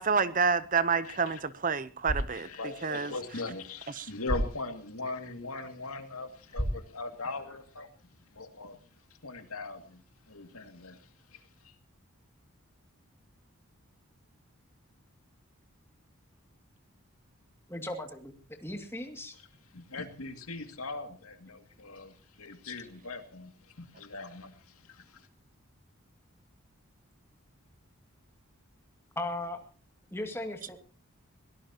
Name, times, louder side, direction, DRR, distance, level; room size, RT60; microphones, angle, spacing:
voice 1, 0.0-2.5 2.8-3.1 4.0-4.1, right 5 dB, 35° right, 0.7 m, -28 dB
voice 2, 1.0-1.4 2.3-7.9 8.3-8.8 9.2-10.0 10.3-11.7 19.7-25.3, left 3 dB, 85° left, 2.3 m, -40 dB
sound 1, 1.9-7.9, equal, 25° left, 6.8 m, -38 dB
voice 3, 17.7-18.3 18.6-19.3 29.2-29.6 30.1-30.8, left 1 dB, 10° left, 2.2 m, -37 dB
22.5 x 17.5 x 2.9 m
head